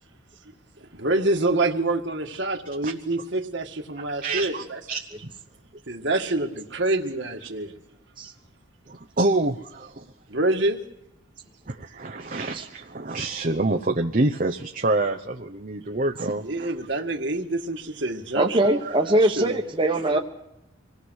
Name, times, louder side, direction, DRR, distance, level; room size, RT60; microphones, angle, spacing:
voice 1, 0.9-4.8 5.9-7.7 10.3-10.8 16.4-19.6 20.1-20.2, right 2 dB, 60° right, 4 dB, 1.9 m, -26 dB
voice 2, 4.2-5.0 8.9-10.0 11.7-16.7 18.8-18.9, right 2 dB, 40° right, 4 dB, 0.9 m, -27 dB
voice 3, 18.3-20.2, right 1 dB, 25° right, 2 dB, 1.2 m, -22 dB
26.0 x 18.5 x 6.4 m, 0.85 s
head